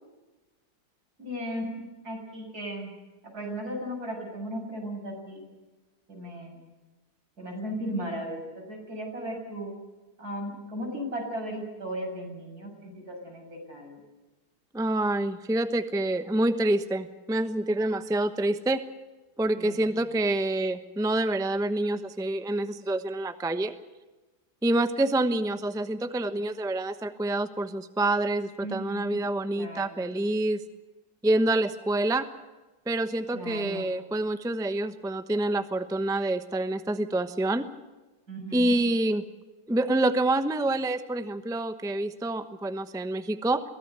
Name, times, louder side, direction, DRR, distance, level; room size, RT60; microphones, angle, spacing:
voice 1, 1.2-2.9 3.2-5.4 6.1-6.6 7.4-9.7 10.2-14.0 19.5-20.0 28.6-29.2 29.5-30.0 33.3-33.9 38.3-38.8, equal, 70° right, 1 dB, 7.4 m, -36 dB
voice 2, 14.7-18.8 19.4-23.7 24.6-30.6 31.2-32.3 32.9-37.7 38.5-39.2 39.7-43.6, right 2 dB, 5° right, 10 dB, 0.8 m, -27 dB
23.0 x 17.0 x 8.0 m, 1.2 s
omnidirectional pair, 1.7 m